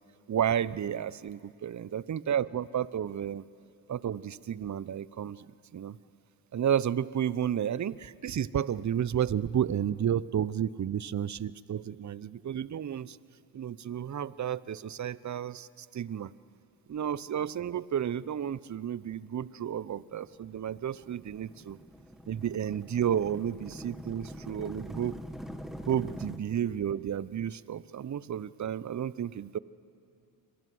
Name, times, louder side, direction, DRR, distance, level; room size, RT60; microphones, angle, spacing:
voice 1, 0.3-3.4 3.9-6.0 6.5-13.2 13.5-16.3 16.9-21.8 22.3-25.2 25.9-29.6, right 9 dB, 35° right, 19 dB, 0.9 m, -32 dB
sound 1, 19.5-26.4, equal, ahead, 2.0 m, -44 dB
30.0 x 23.0 x 7.9 m, 2.6 s
supercardioid pair, 60°, 47 cm